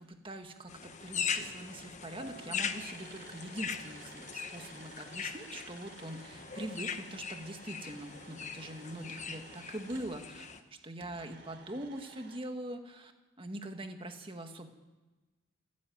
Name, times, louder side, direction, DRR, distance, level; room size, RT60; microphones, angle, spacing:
voice 1, 0.0-10.5 10.8-13.1 13.4-14.7, right 1 dB, 25° right, 5 dB, 1.8 m, -43 dB
sound 1, 0.7-10.6, left 6 dB, 35° left, 1.2 m, -40 dB
Acoustic guitar, 2.2-7.4, right 2 dB, 40° right, 4.6 m, -58 dB
sound 2, 2.2-10.2 11.0-12.4, right 4 dB, 55° right, 3.9 m, -55 dB
27.5 x 10.5 x 9.3 m, 1.2 s
head